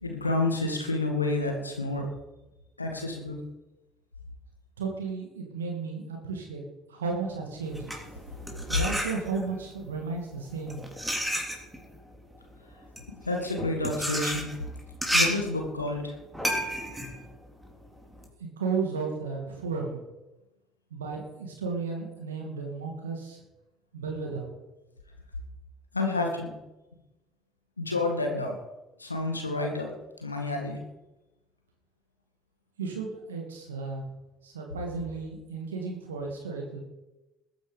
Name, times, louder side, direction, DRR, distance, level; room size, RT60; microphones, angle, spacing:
voice 1, 0.0-2.0 2.8-3.4 13.3-14.5 15.1-16.2 25.9-26.6 27.8-28.5 29.0-29.9 30.2-30.8, left 2 dB, 90° left, 2 dB, 1.9 m, -29 dB
voice 2, 4.8-6.6 6.9-7.8 8.7-10.8 18.6-20.0 20.9-23.4 23.9-24.5 32.8-34.0 34.4-36.8, right 4 dB, 80° right, 1 dB, 2.3 m, -33 dB
sound 1, 7.6-9.6 10.4-18.3, equal, 5° right, 3.7 m, -31 dB
20.5 x 9.3 x 5.2 m, 1.0 s
figure-of-eight pair, 55°, 0 cm